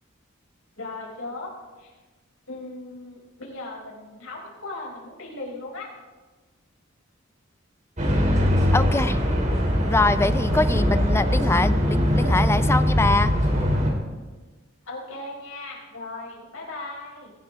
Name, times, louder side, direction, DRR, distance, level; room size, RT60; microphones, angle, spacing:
voice 1, 0.8-1.5 1.8-1.9 2.5-5.9 14.8-17.3, left 2 dB, 85° left, -2 dB, 4.9 m, -37 dB
sound 1, 8.0-13.9, equal, 35° right, 3.1 m, -21 dB
voice 2, 8.7-9.2 9.9-13.3, left 2 dB, 10° left, 12 dB, 0.5 m, -23 dB
24.0 x 15.0 x 3.6 m, 1.3 s
head